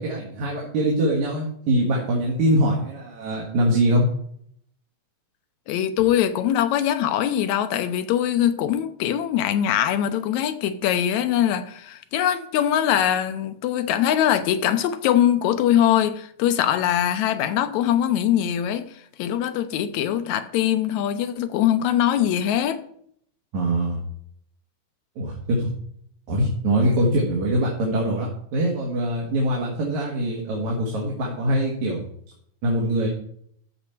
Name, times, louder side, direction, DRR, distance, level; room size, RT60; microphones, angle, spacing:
voice 1, 0.0-4.0 23.5-24.0 25.2-25.7 26.3-32.0 32.6-33.1, right 1 dB, 70° right, 3.0 m, -23 dB
voice 2, 5.7-18.9 19.2-22.8, left 10 dB, 80° left, 2.0 m, -22 dB
13.5 x 6.0 x 4.4 m
omnidirectional pair, 3.4 m